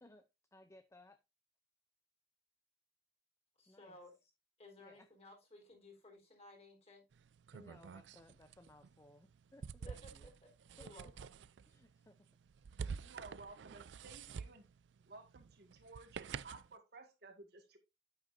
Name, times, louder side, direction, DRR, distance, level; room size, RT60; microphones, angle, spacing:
voice 1, 0.0-1.2 3.7-4.0 4.8-5.1 7.5-10.3 10.8-11.1 11.7-12.2, left 2 dB, 15° left, 0.6 m, -62 dB
voice 2, 3.6-4.2 4.6-7.0 9.8-10.1 10.4-11.3, left 1 dB, 35° left, 4.0 m, -58 dB
sound 1, 7.1-16.8, right 6 dB, 90° right, 0.4 m, -49 dB
voice 3, 13.0-14.7 15.1-17.8, right 3 dB, 60° right, 1.9 m, -56 dB
9.2 x 8.2 x 2.6 m
head